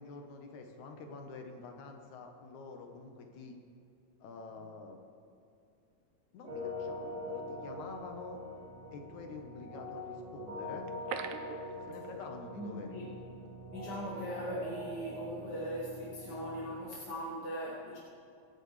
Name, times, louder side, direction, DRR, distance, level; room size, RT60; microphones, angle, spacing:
voice 1, 0.0-3.6 4.2-5.0 6.3-8.4 8.9-10.9 11.9-13.0, left 4 dB, 80° left, 3 dB, 2.6 m, -47 dB
sound 1, 6.5-16.8, left 1 dB, 60° right, 3.3 m, -43 dB
sound 2, 10.8-12.6 12.8-12.9 13.4-13.5, right 8 dB, 85° right, 1.9 m, -42 dB
voice 2, 12.5-13.1 13.7-18.0, equal, 45° left, -5 dB, 1.6 m, -40 dB
24.0 x 9.2 x 3.3 m, 2.5 s
omnidirectional pair, 3.3 m